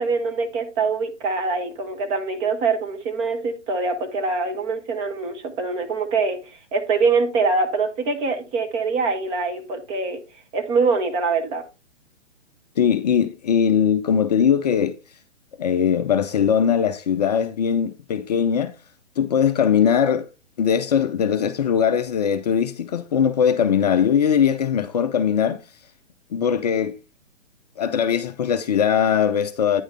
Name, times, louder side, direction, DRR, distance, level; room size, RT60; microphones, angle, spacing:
voice 1, 0.0-10.2 10.5-11.6, right 4 dB, 15° right, 0.7 m, -24 dB
voice 2, 12.8-15.0 15.6-18.7 19.2-20.3 20.6-25.6 26.3-27.0 27.8-29.8, left 8 dB, 35° left, 0.6 m, -20 dB
9.2 x 6.3 x 3.2 m
figure-of-eight pair, 130°, 36 cm